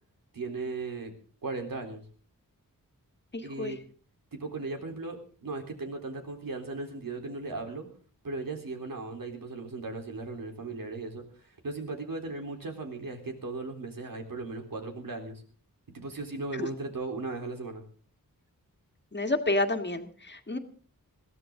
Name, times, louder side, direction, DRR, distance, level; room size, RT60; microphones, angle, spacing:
voice 1, 0.3-1.1 1.4-2.0 3.4-3.8 4.3-7.9 8.2-15.4 15.9-17.8, right 3 dB, 75° right, 3 dB, 3.8 m, -37 dB
voice 2, 3.3-3.8 16.6-16.7 19.1-20.6, left 2 dB, 30° left, 5 dB, 1.9 m, -29 dB
22.0 x 15.5 x 3.8 m, 0.39 s
wide cardioid pair, 105°, 34 cm